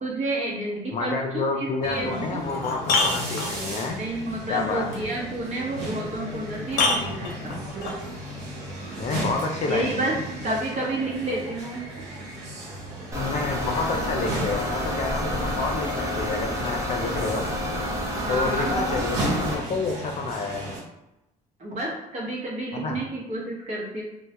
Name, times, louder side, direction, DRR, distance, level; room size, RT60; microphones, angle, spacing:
voice 1, 0.0-2.5 4.0-7.6 9.7-10.1 10.4-11.9 18.2-18.8 21.6-24.0, right 2 dB, 45° right, -4 dB, 0.9 m, -30 dB
voice 2, 0.9-4.0 4.5-5.0 9.0-10.2 13.1-17.5 18.3-20.7 22.7-23.0, left 4 dB, 40° left, 2 dB, 0.4 m, -29 dB
sound 1, 1.8-1.9 2.4-3.9 5.9-6.0 6.7-8.0 9.4-9.5, left 3 dB, 90° left, 0.6 m, -26 dB
sound 2, 1.8-20.8, right 1 dB, 90° right, 0.8 m, -35 dB
sound 3, 13.1-19.5, equal, 20° right, 0.6 m, -29 dB
2.2 x 2.1 x 2.8 m, 0.92 s
cardioid pair, 110°, 17 cm